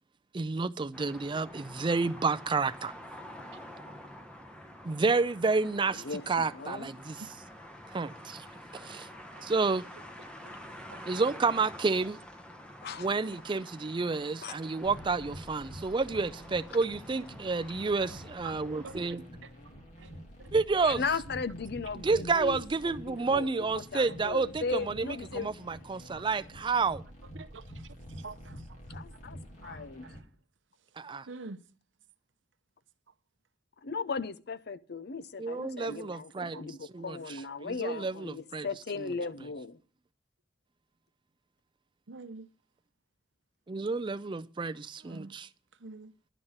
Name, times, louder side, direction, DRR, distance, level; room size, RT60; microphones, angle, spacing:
voice 1, 0.3-2.9 4.8-7.3 7.9-8.5 8.7-9.1 9.4-9.9 11.1-12.2 13.0-19.2 20.5-21.0 22.0-27.0 31.0-31.3 35.4-37.2 37.6-38.7 43.7-45.5, right 4 dB, 25° right, 0.4 m, -30 dB
sound 1, 0.9-19.1, equal, 5° left, 1.2 m, -48 dB
voice 2, 5.9-6.9 12.8-13.1 14.4-14.6 20.8-25.5 28.9-30.1 33.8-39.8, left 4 dB, 60° left, 0.6 m, -37 dB
sound 2, 14.8-30.2, equal, 40° left, 2.6 m, -48 dB
voice 3, 31.3-31.6 36.5-36.6 42.1-42.5 45.1-45.3 45.8-46.1, right 3 dB, 75° right, 0.7 m, -44 dB
11.0 x 5.6 x 7.9 m
head